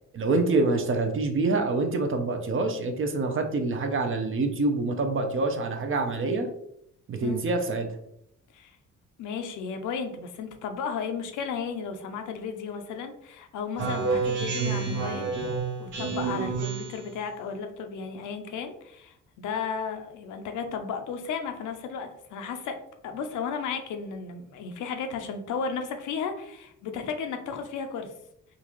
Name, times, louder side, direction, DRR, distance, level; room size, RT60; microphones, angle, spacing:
voice 1, 0.1-6.5 7.1-7.9, right 3 dB, 45° right, 5 dB, 0.6 m, -26 dB
voice 2, 9.2-15.3 15.8-22.8 23.0-28.1, left 6 dB, 80° left, 6 dB, 0.6 m, -34 dB
Speech synthesizer, 13.8-17.1, right 4 dB, 80° right, 1.1 m, -29 dB
3.8 x 2.5 x 3.0 m, 0.75 s
cardioid pair, 90°, 30 cm